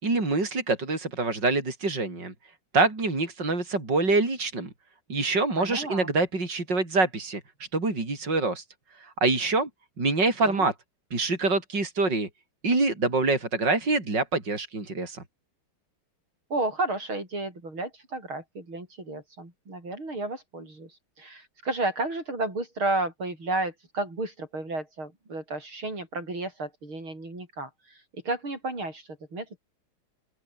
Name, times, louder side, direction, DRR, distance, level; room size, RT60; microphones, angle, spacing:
voice 1, 0.0-2.3 2.7-4.7 5.1-7.4 7.7-8.6 9.0-9.7 10.0-10.7 11.1-12.3 12.6-15.2, right 3 dB, 55° right, 6.1 m, -25 dB
voice 2, 5.6-6.1 10.4-10.7 16.5-29.6, right 2 dB, 75° right, 8.9 m, -32 dB
open air
omnidirectional pair, 2.3 m